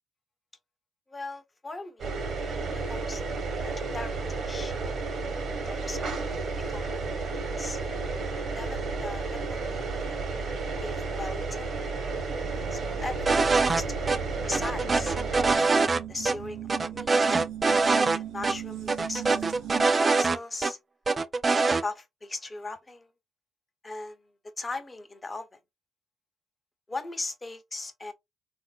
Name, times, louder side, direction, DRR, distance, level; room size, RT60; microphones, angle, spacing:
voice 1, 1.1-2.2 2.7-3.2 3.6-5.0 5.7-7.1 7.3-7.8 8.5-10.1 10.8-11.7 12.7-15.2 15.8-17.1 18.1-19.7 20.0-20.8 21.5-23.1 23.8-24.2 24.6-25.6 26.9-28.1, left 3 dB, 25° left, 0.8 m, -39 dB
sound 1, 2.0-15.6, right 3 dB, 60° right, 1.1 m, -32 dB
sound 2, 12.4-19.9, right 10 dB, 85° right, 0.5 m, -40 dB
sound 3, 13.3-13.8 14.1-14.2 14.5-16.0 16.3-16.4 16.7-18.2 18.4-18.5 18.9-20.7 21.1-21.8, right 3 dB, 30° right, 0.4 m, -23 dB
3.6 x 2.5 x 2.4 m
cardioid pair, 90°, 0 cm